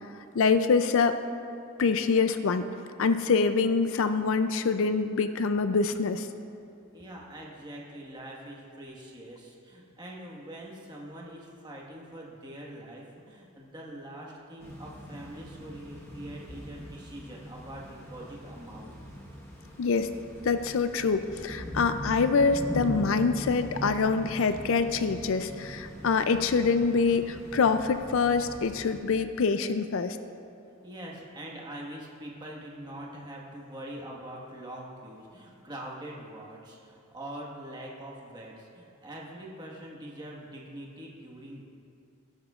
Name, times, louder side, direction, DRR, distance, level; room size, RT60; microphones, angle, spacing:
voice 1, 0.3-1.2 1.8-2.7 3.0-6.3 19.8-20.1 20.4-30.2, left 4 dB, 65° left, 10 dB, 0.4 m, -25 dB
voice 2, 6.9-18.9 30.8-41.6, right 1 dB, 20° right, -3 dB, 1.4 m, -43 dB
sound 1, 14.6-29.0, equal, 10° left, 1.2 m, -41 dB
18.0 x 10.5 x 2.4 m, 2.6 s
head